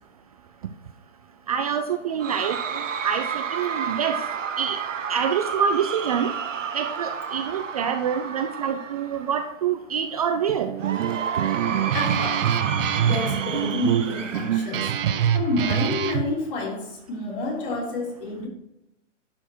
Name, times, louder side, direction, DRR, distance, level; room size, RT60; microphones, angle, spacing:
voice 1, 1.5-4.2 4.6-4.8 5.1-6.3 6.7-10.7, right 7 dB, 30° right, 7 dB, 0.4 m, -26 dB
Cheering / Crowd, 2.2-9.5 10.8-15.5, right 7 dB, 80° right, 1.1 m, -31 dB
Guitar, 10.5-16.3, right 9 dB, 50° right, 0.8 m, -25 dB
voice 2, 11.9-12.6 13.0-14.9 15.3-18.5, left 2 dB, 45° left, -3 dB, 3.6 m, -29 dB
11.5 x 4.5 x 4.5 m, 0.88 s
hypercardioid pair, 135°, 37 cm